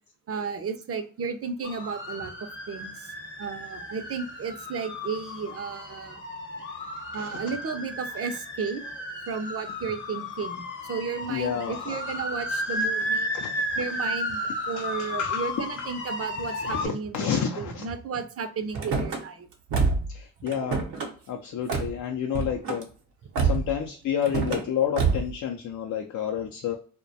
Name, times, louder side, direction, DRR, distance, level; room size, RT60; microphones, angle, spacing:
voice 1, 0.3-3.1 3.4-6.2 7.1-8.8 9.3-13.3 13.7-19.5, right 5 dB, 40° right, 8 dB, 0.5 m, -33 dB
sound 1, 1.6-16.9, left 1 dB, 35° left, 0.8 m, -33 dB
voice 2, 11.3-12.0 13.3-13.8 14.8-15.5 15.8-15.9 16.7-17.8 20.1-20.8 21.3-22.9 23.4-26.8, left 8 dB, 60° left, 1 dB, 0.5 m, -30 dB
Car / Slam, 18.7-19.2 19.7-20.1 20.5-21.1 21.7-21.9 22.3-22.8 23.4-23.8 24.2-24.6 25.0-25.3, right 4 dB, 80° right, 0.7 m, -26 dB
2.2 x 2.1 x 2.6 m, 0.42 s
supercardioid pair, 50°, 35 cm